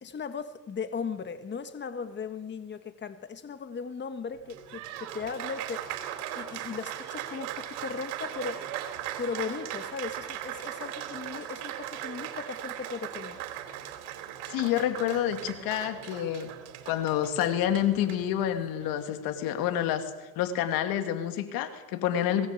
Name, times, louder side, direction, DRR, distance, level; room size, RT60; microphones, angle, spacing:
voice 1, 0.0-8.6 9.2-13.4, left 5 dB, 30° left, 9 dB, 1.6 m, -37 dB
Applause, 4.3-19.1, right 11 dB, 90° right, 3.4 m, -39 dB
voice 2, 14.5-16.5 16.9-20.1 20.4-22.5, left 10 dB, 75° left, 8 dB, 2.6 m, -28 dB
23.0 x 18.0 x 8.4 m, 1.2 s
supercardioid pair, 95°, 36 cm